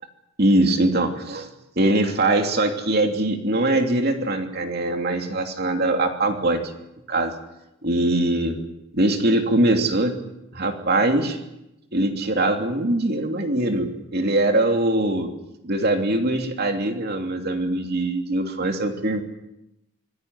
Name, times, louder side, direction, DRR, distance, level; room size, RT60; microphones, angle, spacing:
voice 1, 0.4-1.5 1.8-6.6 7.1-7.3 7.8-8.6 8.9-10.2 10.5-11.4 11.9-15.3 15.6-19.2, right 1 dB, 50° right, 4 dB, 3.0 m, -22 dB
25.5 x 16.0 x 9.6 m, 0.90 s
head